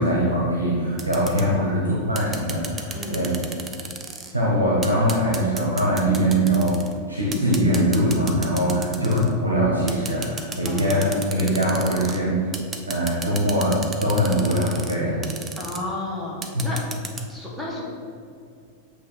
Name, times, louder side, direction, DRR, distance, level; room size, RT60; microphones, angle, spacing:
voice 1, 0.0-3.4 4.3-12.3 12.9-15.2 16.5-16.7, equal, 80° right, -5 dB, 0.9 m, -22 dB
sound 1, 1.0-1.5 2.2-4.3 4.8-6.9 7.3-9.3 9.9-12.2 12.5-15.0 15.2-15.8 16.4-17.2, right 4 dB, 20° right, 0.5 m, -34 dB
voice 2, 10.7-11.3 15.6-16.8 17.3-17.8, left 1 dB, ahead, -6 dB, 1.2 m, -33 dB
7.9 x 2.8 x 4.2 m, 2.4 s
figure-of-eight pair, 90°, 0 cm